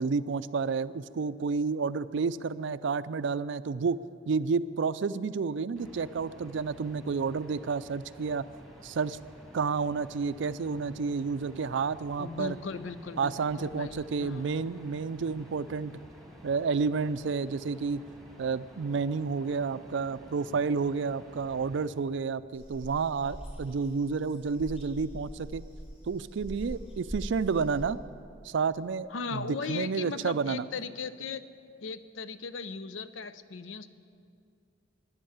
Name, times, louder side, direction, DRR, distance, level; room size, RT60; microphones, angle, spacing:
voice 1, 0.0-8.5 8.8-9.2 9.5-12.6 13.2-16.0 16.4-18.0 18.4-25.6 26.1-28.0 28.4-30.6, right 5 dB, 65° right, 15 dB, 0.4 m, -30 dB
sound 1, 5.8-21.9, right 1 dB, ahead, 1.6 m, -52 dB
voice 2, 12.2-14.7 29.1-31.4 31.8-33.9, left 5 dB, 75° left, 13 dB, 0.6 m, -38 dB
sound 2, 22.5-27.8, equal, 30° left, 4.6 m, -43 dB
13.0 x 10.5 x 8.7 m, 2.4 s
head